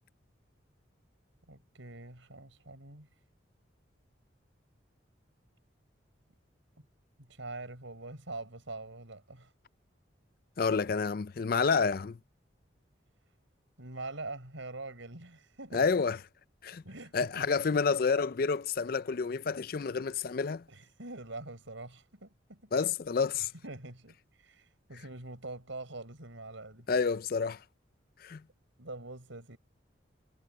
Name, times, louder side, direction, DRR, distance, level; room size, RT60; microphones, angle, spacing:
voice 1, 1.5-3.1 6.8-6.9 7.2-9.5 13.8-15.9 16.8-17.8 20.7-22.7 23.6-26.9 28.8-29.6, right 2 dB, 90° right, 6.1 m, -44 dB
voice 2, 10.6-12.2 15.7-16.2 16.6-16.8 17.1-20.6 22.7-23.5 26.9-27.6 28.2-28.4, left 5 dB, 50° left, 0.4 m, -29 dB
head